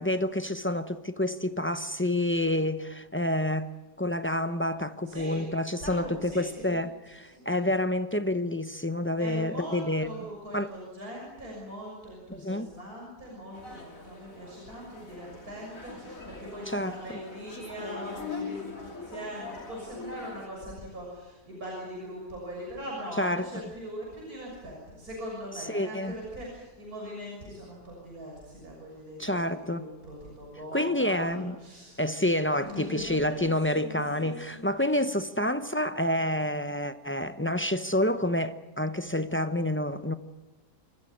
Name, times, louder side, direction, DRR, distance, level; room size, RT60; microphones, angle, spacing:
voice 1, 0.0-3.7 4.0-10.1 10.5-10.7 12.3-12.7 16.7-16.9 23.2-23.5 25.6-26.1 29.2-29.9 30.7-31.5 32.0-40.1, left 1 dB, 20° left, 0.3 m, -28 dB
voice 2, 5.1-5.6 5.8-6.8 7.3-7.4 9.2-32.1 32.5-34.6, equal, 60° right, 7.2 m, -41 dB
sound 1, 13.5-20.5, left 3 dB, 55° left, 3.6 m, -42 dB
28.0 x 14.5 x 10.0 m
omnidirectional pair, 1.8 m